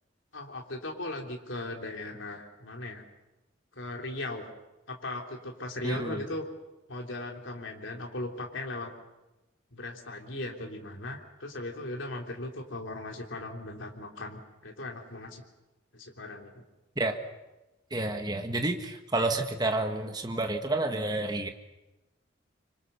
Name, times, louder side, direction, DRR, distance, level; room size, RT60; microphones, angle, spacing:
voice 1, 0.3-3.0 3.7-4.5 4.9-6.5 6.9-8.9 9.7-15.4 15.9-16.6, left 2 dB, 80° left, 1 dB, 3.3 m, -38 dB
voice 2, 5.8-6.2 16.9-17.2 17.9-21.5, right 2 dB, 20° right, 5 dB, 1.6 m, -30 dB
25.5 x 25.5 x 6.8 m, 1.0 s
head